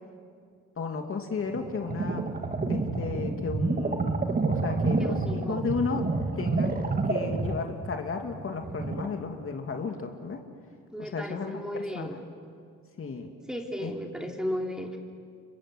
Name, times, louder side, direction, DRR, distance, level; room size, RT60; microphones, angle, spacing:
voice 1, 0.8-2.3 2.7-4.2 4.5-6.1 6.4-10.4 11.0-12.2 13.0-13.3 13.8-13.9, left 4 dB, 45° left, 3 dB, 2.7 m, -33 dB
sound 1, 1.4-9.1, right 3 dB, 30° right, 2.1 m, -29 dB
voice 2, 5.0-5.6 10.9-12.2 13.5-15.0, equal, ahead, 2 dB, 3.4 m, -35 dB
29.5 x 24.5 x 8.1 m, 2.2 s
cardioid pair, 90°, 30 cm